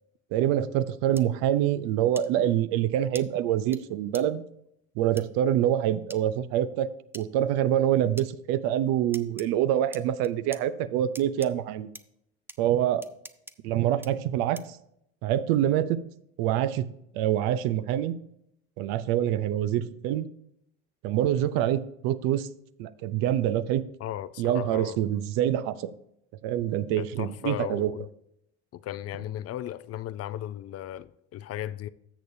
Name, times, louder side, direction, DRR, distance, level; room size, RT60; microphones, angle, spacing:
voice 1, 0.3-4.4 5.0-11.9 12.6-13.1 13.6-14.8 15.2-16.0 16.4-16.9 17.1-18.2 18.8-20.3 21.0-22.5 22.8-23.8 24.4-25.9 26.4-27.9, right 11 dB, 75° right, 0.7 m, -26 dB
sound 1, 1.2-1.3 2.2-2.3 3.2-3.3 3.7-3.8 4.1-4.2 5.2-5.3 6.1-6.2 7.1-7.3 8.2-8.3 9.1-9.5 9.9-10.6 11.2-11.5 12.0-12.1 12.5-12.6 13.0-13.5 14.0-14.1 14.6-14.8, right 2 dB, 5° right, 0.5 m, -43 dB
voice 2, 24.0-25.0 27.0-28.1 28.7-31.9, left 12 dB, 45° left, 0.5 m, -36 dB
13.0 x 7.0 x 2.7 m
supercardioid pair, 75°, 36 cm